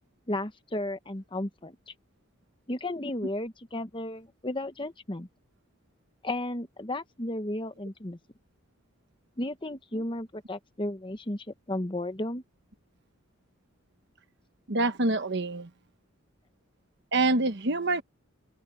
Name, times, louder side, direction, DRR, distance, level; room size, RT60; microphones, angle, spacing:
voice 1, 0.3-1.8 2.7-5.3 6.2-8.2 9.4-12.4, left 1 dB, 25° left, 1.2 m, -34 dB
voice 2, 14.7-15.7 17.1-18.0, right 2 dB, 55° right, 1.2 m, -26 dB
head